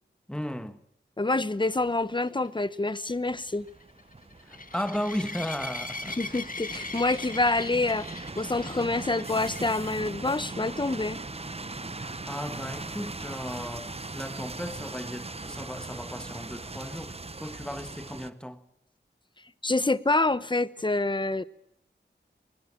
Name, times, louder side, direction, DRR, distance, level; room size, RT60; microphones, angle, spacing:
voice 1, 0.3-0.8 4.4-6.4 12.0-17.1 17.4-18.6, equal, 5° left, 1.7 m, -35 dB
voice 2, 1.2-3.7 6.1-11.2 19.6-21.4, left 2 dB, 25° left, 1.1 m, -27 dB
sound 1, 2.1-10.1 10.7-11.0 11.3-11.4 11.8-11.9 15.4-15.5, left 3 dB, 45° left, 1.8 m, -40 dB
sound 2, 3.1-18.3, right 3 dB, 30° right, 1.1 m, -40 dB
23.0 x 21.0 x 7.5 m
wide cardioid pair, 80°, 19 cm